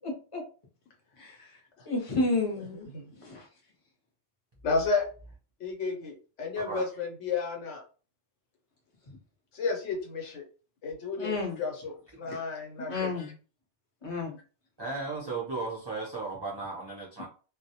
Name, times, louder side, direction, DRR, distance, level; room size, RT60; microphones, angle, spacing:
voice 1, 0.0-0.4 1.2-1.5 1.9-2.9 3.2-3.5 11.2-11.6 12.9-13.3 14.0-14.4, left 3 dB, 35° left, 0 dB, 0.6 m, -31 dB
voice 2, 4.6-5.0 5.6-7.8 9.5-10.4 10.8-13.3, left 4 dB, 85° left, 1 dB, 1.0 m, -32 dB
voice 3, 14.8-17.3, right 3 dB, 30° right, -5 dB, 0.4 m, -35 dB
2.2 x 2.0 x 2.7 m, 0.37 s
omnidirectional pair, 1.2 m